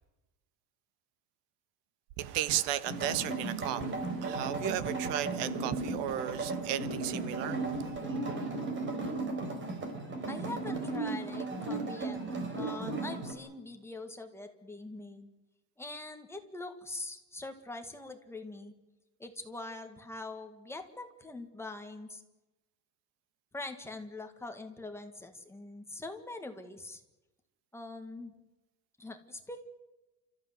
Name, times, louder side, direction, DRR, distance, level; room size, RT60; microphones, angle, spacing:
voice 1, 2.2-8.0, right 12 dB, 85° right, 1.6 m, -35 dB
sound 1, 2.9-13.3, right 3 dB, 30° right, 3.9 m, -35 dB
voice 2, 10.3-12.2 12.5-15.3 15.8-18.7 19.2-22.2 23.5-27.0 27.7-28.3 29.0-29.6, left 2 dB, 5° left, 1.8 m, -43 dB
29.5 x 14.0 x 9.5 m
cardioid pair, 170°, 41 cm